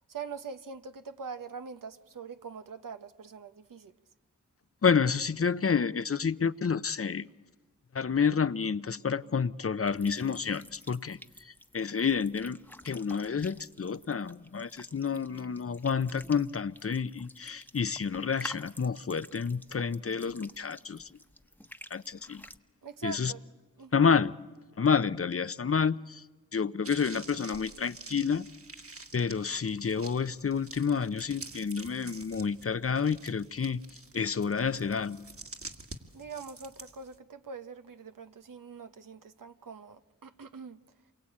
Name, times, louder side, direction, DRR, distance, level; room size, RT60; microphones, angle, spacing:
voice 1, 0.1-3.9 22.8-23.5 23.8-24.0 36.1-40.8, right 5 dB, 80° right, 1.2 m, -43 dB
voice 2, 4.8-7.3 7.9-11.2 11.7-12.6 12.8-21.0 21.9-22.4 23.0-23.3 23.9-24.3 24.8-26.2 26.5-28.5 29.1-33.8 34.1-35.3, left 6 dB, 45° left, 0.8 m, -29 dB
sound 1, 9.9-22.6, left 1 dB, 5° left, 1.2 m, -50 dB
sound 2, 26.8-37.2, right 3 dB, 45° right, 2.1 m, -48 dB
28.0 x 23.0 x 8.7 m
cardioid pair, 40°, 32 cm